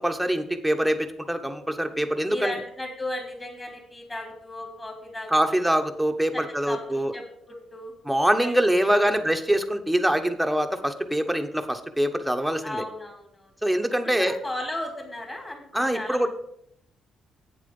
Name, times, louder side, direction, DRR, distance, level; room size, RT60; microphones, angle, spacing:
voice 1, 0.0-2.5 5.3-7.1 8.0-12.8 13.6-14.3 15.7-16.3, right 1 dB, ahead, 5 dB, 1.1 m, -24 dB
voice 2, 1.9-5.7 6.3-7.9 8.4-8.5 9.0-9.1 12.6-13.5 14.0-16.2, left 1 dB, 20° left, 3 dB, 3.2 m, -36 dB
8.6 x 7.3 x 5.4 m, 0.72 s
cardioid pair, 90°, 0 cm